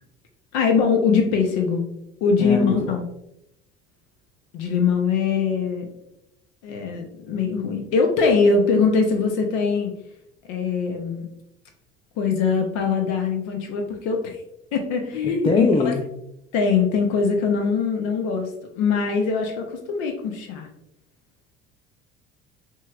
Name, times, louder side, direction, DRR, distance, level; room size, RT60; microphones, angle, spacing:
voice 1, 0.5-1.8 2.2-3.0 4.5-5.9 6.6-9.9 10.5-11.3 12.2-14.4 14.7-15.9 16.5-20.7, left 5 dB, 65° left, 4 dB, 0.8 m, -22 dB
voice 2, 2.4-3.0 15.2-16.0, left 3 dB, 20° left, 1 dB, 0.6 m, -23 dB
5.6 x 3.1 x 2.4 m, 0.83 s
hypercardioid pair, 65°, 32 cm